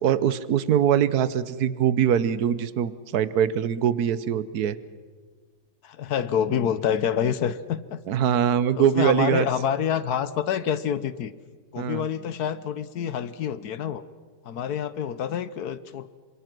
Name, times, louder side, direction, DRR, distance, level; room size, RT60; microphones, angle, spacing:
voice 1, 0.0-4.8 8.1-9.5 11.8-12.1, right 9 dB, 60° right, 16 dB, 1.3 m, -23 dB
voice 2, 5.8-8.0 8.8-11.3 11.7-14.0 14.4-16.1, left 8 dB, 60° left, 15 dB, 1.2 m, -27 dB
27.0 x 25.0 x 6.1 m, 1.5 s
omnidirectional pair, 2.1 m